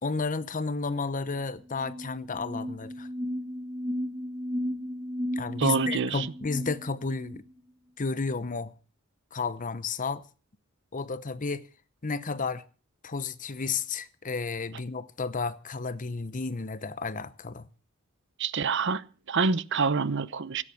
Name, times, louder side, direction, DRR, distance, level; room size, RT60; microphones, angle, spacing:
voice 1, 0.0-3.1 5.4-7.4 8.0-8.7 9.3-10.2 10.9-11.6 12.0-12.6 13.0-17.7, left 4 dB, 40° left, 0.8 m, -32 dB
sound 1, 1.7-7.4, equal, 15° right, 3.8 m, -34 dB
voice 2, 5.6-6.3 18.4-20.6, right 5 dB, 60° right, 0.8 m, -27 dB
16.5 x 9.8 x 7.1 m
head